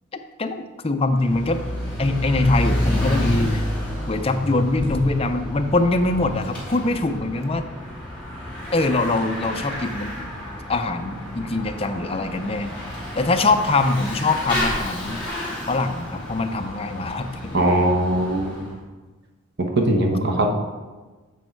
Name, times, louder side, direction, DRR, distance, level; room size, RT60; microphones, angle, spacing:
voice 1, 0.8-1.6 2.0-3.6 4.1-7.6 8.7-10.1 10.7-12.7 13.1-15.2 15.7-17.6, left 2 dB, 25° left, 6 dB, 0.5 m, -23 dB
Bicycle / Mechanisms, 1.1-18.7, left 1 dB, 5° left, 2.4 m, -30 dB
voice 2, 17.5-18.7 19.7-20.5, right 1 dB, 50° right, 2 dB, 1.1 m, -20 dB
8.3 x 5.3 x 4.5 m, 1.3 s
head